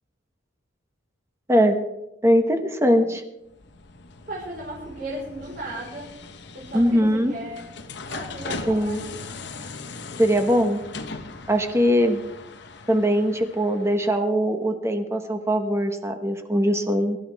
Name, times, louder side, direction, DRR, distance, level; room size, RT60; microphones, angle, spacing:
voice 1, 2.2-3.2 6.7-7.3 8.7-9.0 10.2-10.8 11.5-12.2 12.9-17.2, equal, 15° right, 5 dB, 1.1 m, -21 dB
sound 1, 3.5-14.2, left 3 dB, 60° left, 1.1 m, -39 dB
voice 2, 4.3-6.2 6.5-7.7 8.1-9.0, right 1 dB, 50° right, -5 dB, 4.6 m, -35 dB
24.0 x 12.5 x 3.5 m, 0.91 s
head